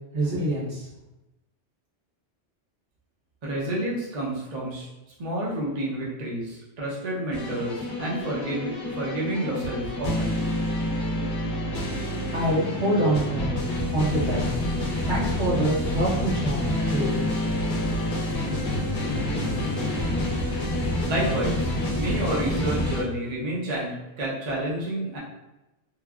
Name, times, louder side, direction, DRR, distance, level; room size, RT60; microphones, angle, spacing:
voice 1, 0.1-0.9 12.3-13.5 13.9-14.4 15.1-17.3, right 1 dB, 75° right, -6 dB, 1.2 m, -25 dB
voice 2, 3.4-4.9 5.2-10.4 21.1-25.2, right 1 dB, 45° right, -5 dB, 0.7 m, -29 dB
sound 1, 7.3-23.0, left 1 dB, 50° left, 0.8 m, -28 dB
3.2 x 2.2 x 2.3 m, 0.99 s
omnidirectional pair, 1.2 m